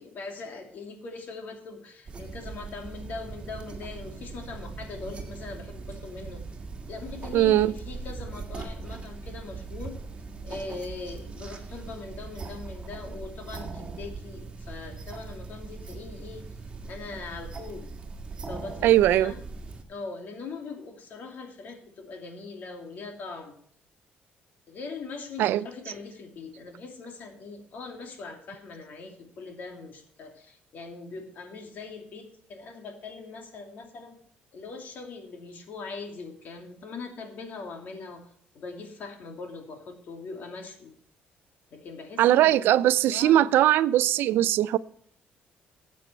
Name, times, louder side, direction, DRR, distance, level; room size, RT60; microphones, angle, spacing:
voice 1, 0.0-6.4 6.9-10.0 10.4-16.5 16.9-17.9 18.4-19.4 19.9-23.5 24.7-34.2 34.5-38.3 38.5-40.9 41.7-42.7 43.1-43.5, left 4 dB, 55° left, 2.7 m, -41 dB
sound 1, 2.1-19.8, right 4 dB, 25° right, 2.0 m, -40 dB
voice 2, 7.3-7.7 18.8-19.3 25.4-25.6 42.2-44.8, right 13 dB, 80° right, 0.5 m, -20 dB
13.0 x 8.3 x 4.4 m
cardioid pair, 135°, 4 cm